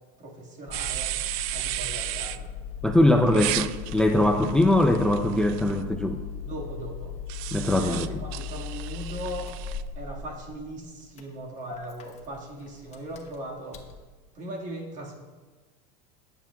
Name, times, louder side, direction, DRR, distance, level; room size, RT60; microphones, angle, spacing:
voice 1, 0.2-1.2 1.5-2.5 3.1-3.4 6.4-7.2 7.6-9.5 9.9-13.8 14.3-15.1, right 1 dB, 35° right, 0 dB, 1.8 m, -38 dB
Engine starting, 0.7-14.0, left 6 dB, 30° left, 1.0 m, -38 dB
sound 1, 0.7-2.4 3.3-5.8 7.3-9.8, right 16 dB, 55° right, 0.4 m, -34 dB
voice 2, 2.8-6.2 7.5-8.1, left 1 dB, 5° left, 5 dB, 0.4 m, -22 dB
17.0 x 7.3 x 2.3 m, 1.3 s
supercardioid pair, 125°, 21 cm